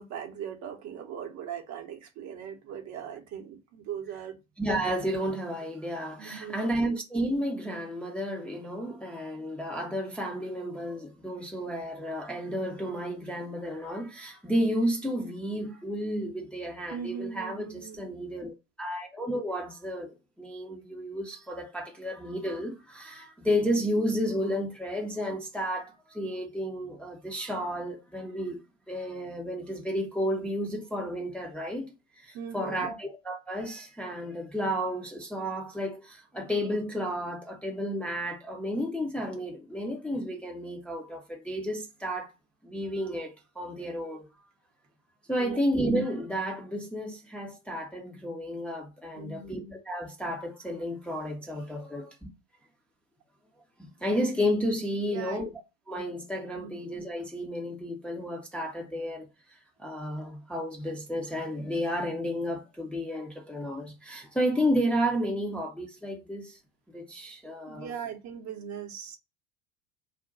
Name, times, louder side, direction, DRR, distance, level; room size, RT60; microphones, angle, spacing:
voice 1, 0.0-4.4 6.2-6.8 16.9-18.0 32.3-33.0 45.4-45.6 49.1-49.8 51.4-51.6 55.0-55.5 56.6-56.8 67.7-69.2, right 8 dB, 40° right, 0.8 m, -40 dB
voice 2, 4.6-28.6 28.9-31.9 32.2-42.3 42.6-44.3 45.3-52.2 53.8-55.5 55.9-66.6 66.9-68.0, equal, 5° left, 0.6 m, -32 dB
2.5 x 2.2 x 3.8 m
figure-of-eight pair, 75°, 41 cm